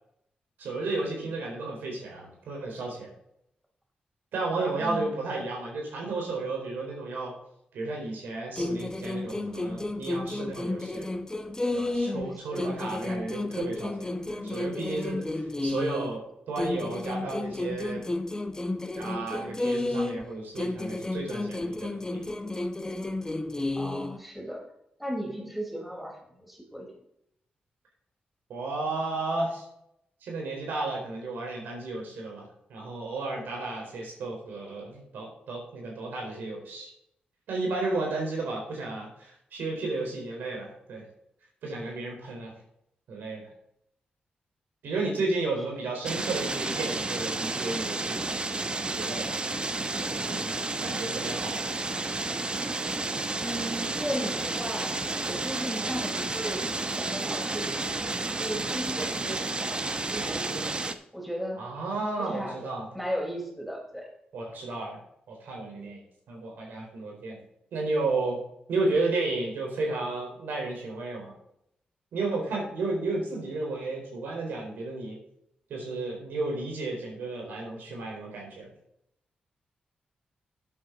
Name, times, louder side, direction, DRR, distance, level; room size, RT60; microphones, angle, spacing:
voice 1, 0.6-3.1 4.3-7.4 7.7-11.1 11.7-15.3 15.6-18.0 18.9-22.0 28.5-29.7 30.2-36.9 37.5-41.0 41.6-42.5 43.1-43.5 44.8-48.2 48.9-49.3 50.1-50.5 50.8-51.6 61.6-62.9 64.3-65.0 65.3-66.0 66.3-67.4 67.7-68.4 68.7-71.3 72.1-75.2 75.7-78.7, right 3 dB, 85° right, 0 dB, 4.2 m, -33 dB
voice 2, 4.8-5.1 12.1-12.8 23.7-24.6 25.0-27.0 53.4-60.8 61.1-61.6 62.2-62.6 62.9-64.1, equal, 5° right, 0 dB, 4.1 m, -36 dB
sound 1, 8.6-12.3 12.6-16.2 16.6-20.3 20.6-24.2, left 2 dB, 20° left, 1.0 m, -32 dB
sound 2, 46.0-60.9, right 2 dB, 30° right, 1.0 m, -31 dB
11.5 x 8.7 x 4.0 m, 0.76 s
cardioid pair, 65°, 3 cm